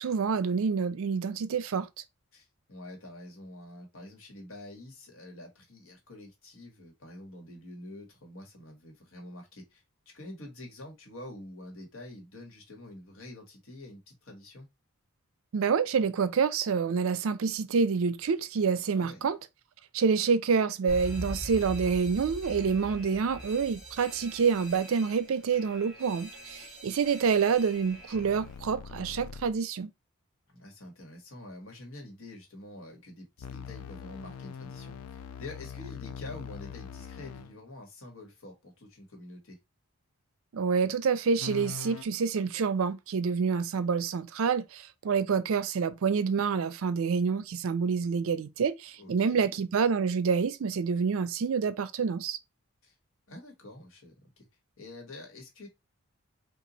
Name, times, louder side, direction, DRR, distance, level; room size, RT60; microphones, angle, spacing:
voice 1, 0.0-1.9 15.5-19.4 19.9-29.9 40.5-52.4, right 5 dB, 70° right, 0.4 m, -27 dB
voice 2, 2.3-14.7 18.9-19.2 30.5-39.6 49.0-49.6 52.8-52.9 53.3-54.5 54.8-55.7, left 1 dB, 65° left, 1.4 m, -47 dB
Alarm, 20.9-28.6, equal, ahead, 1.5 m, -43 dB
sound 1, 28.1-29.6 33.4-37.6 41.4-42.0, left 7 dB, 80° left, 0.4 m, -42 dB
2.9 x 2.4 x 3.9 m
head